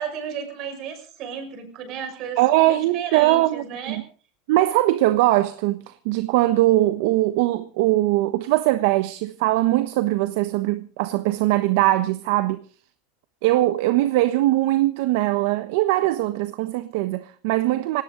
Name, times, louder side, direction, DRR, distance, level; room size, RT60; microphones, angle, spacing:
voice 1, 0.0-4.0, right 7 dB, 50° right, 6.1 m, -33 dB
voice 2, 2.4-4.0 4.5-12.6 13.4-18.0, right 16 dB, 70° right, 1.1 m, -21 dB
19.0 x 18.0 x 3.9 m
supercardioid pair, 130°, 0 cm